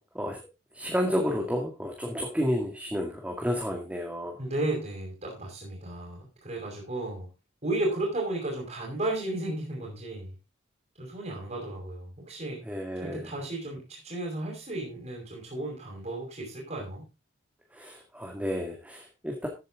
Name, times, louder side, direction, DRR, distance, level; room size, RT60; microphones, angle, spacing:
voice 1, 0.7-4.4 12.7-13.3 17.7-19.5, equal, 5° right, 1 dB, 2.2 m, -31 dB
voice 2, 4.4-7.3 7.6-10.3 11.0-12.6 13.0-17.0, right 2 dB, 40° right, -1 dB, 5.3 m, -34 dB
14.0 x 9.3 x 3.8 m, 0.27 s
head